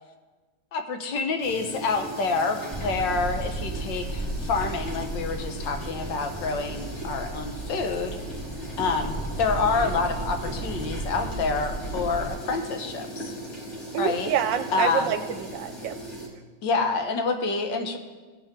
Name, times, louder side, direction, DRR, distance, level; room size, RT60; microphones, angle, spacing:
voice 1, 0.7-8.2 8.8-13.4 14.0-14.3 14.7-15.2 16.6-18.0, left 4 dB, 70° left, 5 dB, 1.6 m, -27 dB
sound 1, 1.4-16.3, right 1 dB, 45° left, 2.4 m, -39 dB
sound 2, 2.7-12.3, right 2 dB, 5° left, 1.6 m, -34 dB
voice 2, 13.9-15.9, right 8 dB, 75° right, 9 dB, 1.3 m, -27 dB
16.5 x 6.9 x 3.7 m, 1.3 s
omnidirectional pair, 2.1 m